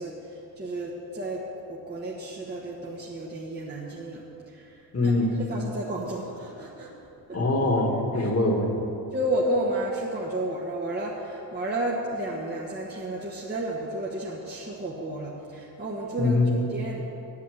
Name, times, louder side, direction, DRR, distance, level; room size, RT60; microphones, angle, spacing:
voice 1, 0.0-5.1 5.5-6.9 7.3-7.4 8.2-8.3 9.1-17.0, right 1 dB, 25° right, -4 dB, 1.2 m, -32 dB
voice 2, 4.9-5.3 7.3-8.8 16.2-16.5, left 2 dB, 35° left, 1 dB, 1.8 m, -23 dB
9.2 x 8.5 x 7.9 m, 2.8 s
cardioid pair, 105°, 43 cm